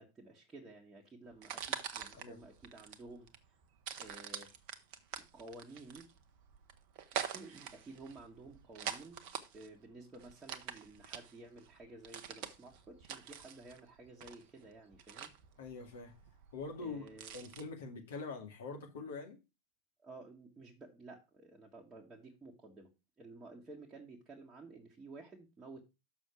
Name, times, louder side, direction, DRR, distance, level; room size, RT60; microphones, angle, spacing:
voice 1, 0.0-3.6 4.0-4.5 5.1-6.1 7.3-9.2 9.5-15.3 16.8-17.3 20.0-22.9 23.2-25.8, right 2 dB, 15° right, 1.5 m, -53 dB
sound 1, 1.3-17.6, right 8 dB, 45° right, 0.9 m, -46 dB
voice 2, 15.6-16.1 16.5-17.0 17.3-19.4, left 4 dB, 60° left, 2.2 m, -44 dB
6.4 x 6.3 x 4.6 m
figure-of-eight pair, 90°, 0 cm